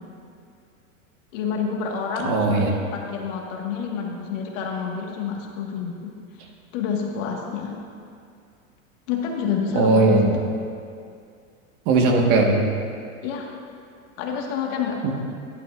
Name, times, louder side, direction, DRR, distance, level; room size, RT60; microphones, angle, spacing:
voice 1, 1.3-6.1 6.7-7.8 9.1-10.5 13.2-13.5 14.2-15.0, left 6 dB, 65° left, 0 dB, 1.7 m, -28 dB
voice 2, 2.2-2.7 9.7-10.4 11.9-12.6 15.0-15.1, right 3 dB, 50° right, 1 dB, 1.6 m, -18 dB
11.0 x 11.0 x 2.5 m, 2.3 s
hypercardioid pair, 115°, 41 cm